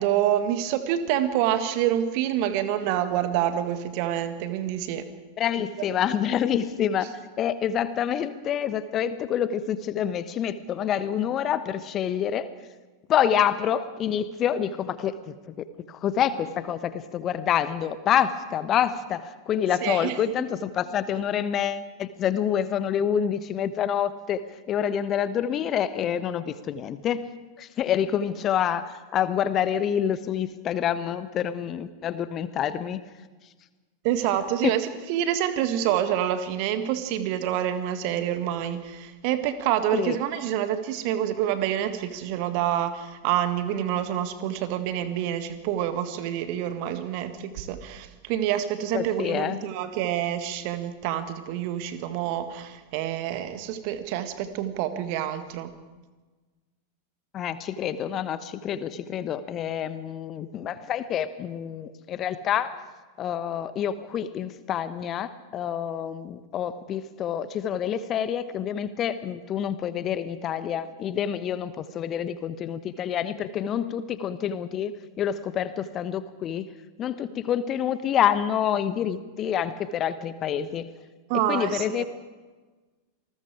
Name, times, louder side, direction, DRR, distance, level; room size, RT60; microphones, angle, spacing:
voice 1, 0.0-5.1 5.8-6.1 19.8-20.5 34.0-55.7 81.3-82.0, right 11 dB, 45° right, 10 dB, 1.8 m, -27 dB
voice 2, 5.4-12.5 13.1-15.5 15.9-24.4 24.7-27.3 27.6-33.0 34.6-34.8 39.9-40.2 48.9-49.6 57.3-62.7 63.2-74.9 75.2-76.7 77.0-80.9 81.5-82.0, left 9 dB, 30° left, 14 dB, 1.1 m, -27 dB
27.5 x 20.0 x 4.9 m, 1.3 s
figure-of-eight pair, 90°, 0 cm